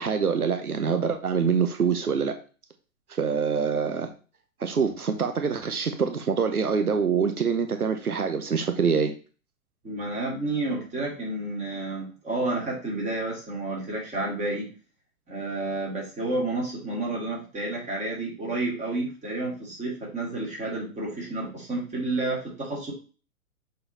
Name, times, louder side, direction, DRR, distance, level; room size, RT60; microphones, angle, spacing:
voice 1, 0.0-2.3 3.2-4.1 4.6-9.1, right 6 dB, 85° right, 7 dB, 1.0 m, -25 dB
voice 2, 9.8-14.7 15.3-22.9, right 2 dB, 15° right, -3 dB, 3.0 m, -30 dB
6.6 x 4.0 x 4.2 m, 0.36 s
figure-of-eight pair, 110°, 43 cm